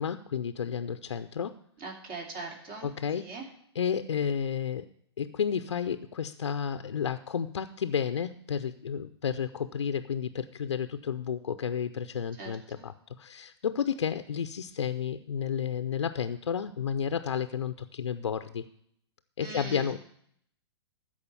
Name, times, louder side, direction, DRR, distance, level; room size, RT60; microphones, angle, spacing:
voice 1, 0.0-1.6 2.8-3.3 3.8-4.9 5.2-18.6 19.4-20.0, left 7 dB, 85° left, 9 dB, 0.5 m, -31 dB
voice 2, 1.8-2.9 3.2-3.5 12.4-12.8 19.4-19.9, right 3 dB, 40° right, 1 dB, 3.0 m, -41 dB
13.5 x 4.9 x 8.3 m, 0.68 s
hypercardioid pair, 120°, 15 cm